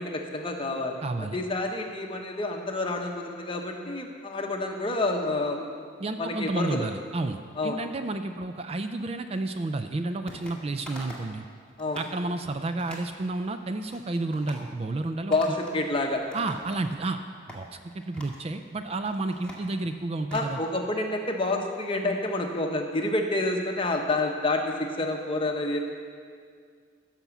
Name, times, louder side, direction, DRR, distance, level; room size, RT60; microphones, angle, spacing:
voice 1, 0.0-1.0 1.3-5.7 6.2-6.9 7.6-7.8 11.8-12.0 15.3-16.2 20.3-25.8, left 2 dB, 25° left, 2 dB, 1.0 m, -28 dB
voice 2, 1.0-1.4 6.0-11.4 11.9-15.6 16.3-20.6, right 2 dB, 30° right, 8 dB, 0.4 m, -31 dB
sound 1, 10.3-10.6 10.9-11.3 11.7-12.1 12.8-13.1 13.6-14.0 14.3-14.7 15.3-15.8 16.1-17.0 17.5-17.6 18.1-18.4 18.9-20.5, equal, 5° left, 1.7 m, -45 dB
15.5 x 6.0 x 7.1 m, 2.1 s
head